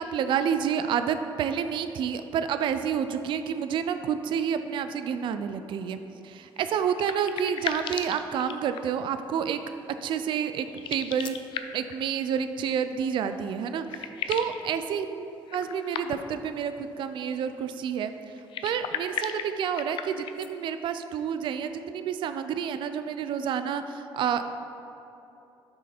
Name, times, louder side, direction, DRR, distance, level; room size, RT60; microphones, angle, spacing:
voice 1, 0.0-9.6 10.0-11.4 11.7-15.3 15.5-18.1 18.6-24.5, right 8 dB, 60° right, 9 dB, 0.3 m, -29 dB
sound 1, 6.5-9.1 10.7-12.0 13.3-13.4 13.6-14.6 15.5-16.4 18.4-20.5, left 8 dB, 65° left, 0.4 m, -36 dB
6.6 x 4.7 x 5.0 m, 2.9 s
cardioid pair, 135°, 9 cm